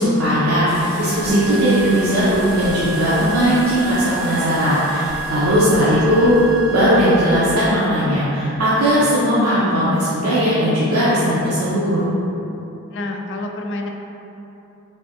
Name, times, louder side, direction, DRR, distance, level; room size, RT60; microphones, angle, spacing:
voice 1, 0.0-6.4 6.7-12.0, equal, 80° right, -10 dB, 0.7 m, -18 dB
sound 1, 0.7-9.0, left 1 dB, 80° left, 0.7 m, -36 dB
sound 2, 1.1-7.7, right 5 dB, 45° right, 0.4 m, -31 dB
Guitar, 1.3-4.3, right 2 dB, 5° right, 0.7 m, -25 dB
voice 2, 12.9-13.9, left 2 dB, 55° left, 3 dB, 0.3 m, -28 dB
3.4 x 3.3 x 2.8 m, 3.0 s
head